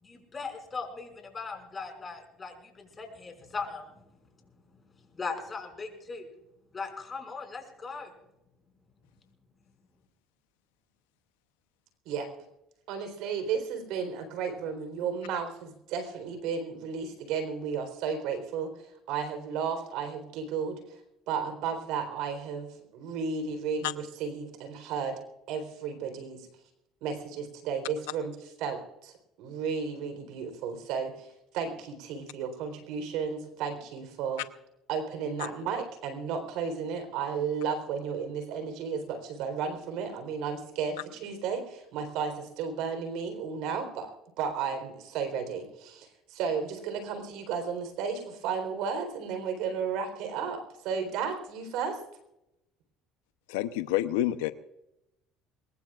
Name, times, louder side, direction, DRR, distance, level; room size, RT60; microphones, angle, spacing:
voice 1, 0.0-3.9 5.1-6.3 6.7-8.1, left 4 dB, 30° left, 3 dB, 5.7 m, -39 dB
voice 2, 12.9-20.8 21.3-25.2 25.5-26.5 27.0-28.3 28.6-29.1 29.4-34.4 34.9-44.1 44.4-52.0, right 6 dB, 75° right, 7 dB, 3.8 m, -33 dB
voice 3, 53.5-54.5, left 14 dB, 90° left, 12 dB, 0.7 m, -28 dB
23.5 x 20.5 x 2.5 m, 0.86 s
supercardioid pair, 85°, 0 cm